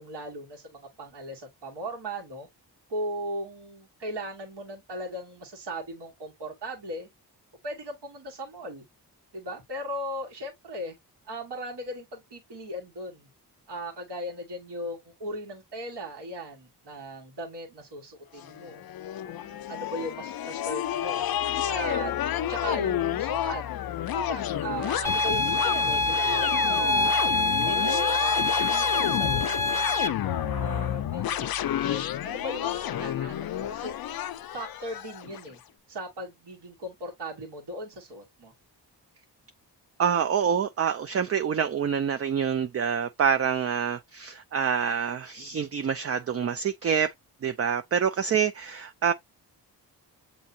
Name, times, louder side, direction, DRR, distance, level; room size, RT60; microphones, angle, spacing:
voice 1, 0.0-2.5 2.9-7.1 7.6-8.8 9.3-11.0 11.2-13.3 13.7-18.8 19.2-21.2 21.7-22.1 22.5-23.6 24.1-27.2 27.6-29.9 30.2-34.0 34.5-35.6 35.9-38.5, right 1 dB, 75° right, 1.6 m, -37 dB
sound 1, 18.4-35.5, left 11 dB, 60° left, 0.5 m, -30 dB
sound 2, 25.0-30.1, left 2 dB, 5° left, 0.8 m, -25 dB
voice 2, 40.0-47.1 47.4-49.1, right 7 dB, 35° right, 0.4 m, -26 dB
7.2 x 2.7 x 2.7 m
cardioid pair, 75°, 42 cm